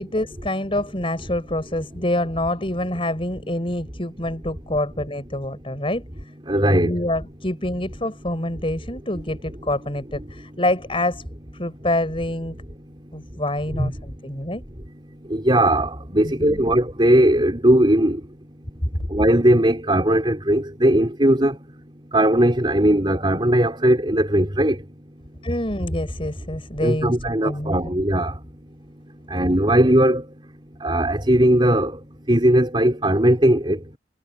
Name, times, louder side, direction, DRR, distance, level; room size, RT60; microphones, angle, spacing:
voice 1, 0.0-6.0 6.7-11.2 11.5-12.6 13.1-14.6 16.2-16.7 25.4-27.2 27.4-27.8, left 1 dB, 30° left, 6.1 m, -26 dB
voice 2, 6.5-6.9 13.8-13.9 15.3-18.2 19.1-21.6 22.1-24.8 26.8-28.4 29.3-30.3 30.8-32.0 32.3-33.8, right 1 dB, 25° right, 4.1 m, -18 dB
head